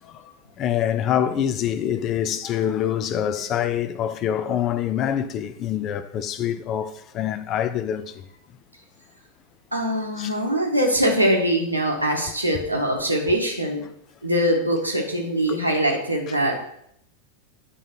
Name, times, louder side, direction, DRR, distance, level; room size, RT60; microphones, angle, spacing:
voice 1, 0.0-8.2 10.2-10.3 15.5-15.6 16.3-16.4, left 10 dB, 35° left, 0.6 m, -25 dB
voice 2, 9.7-13.8 14.2-16.6, equal, 90° right, 1.7 m, -22 dB
9.9 x 3.8 x 6.1 m
figure-of-eight pair, 90°, 0 cm